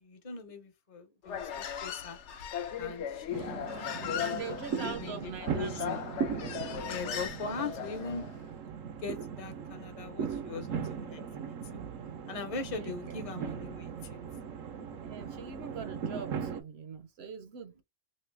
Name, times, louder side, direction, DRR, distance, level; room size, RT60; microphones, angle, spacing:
voice 1, 0.0-2.2 2.8-6.0 6.8-8.2 9.0-11.8 12.3-14.2 15.2-15.4, left 4 dB, 30° left, 0.8 m, -41 dB
Human voice, 1.2-8.3, left 8 dB, 70° left, 0.9 m, -38 dB
sound 1, 3.3-16.6, right 7 dB, 90° right, 1.1 m, -38 dB
voice 2, 4.2-6.0 12.8-13.2 15.0-17.8, right 6 dB, 65° right, 0.8 m, -42 dB
3.2 x 2.7 x 3.3 m
omnidirectional pair, 1.3 m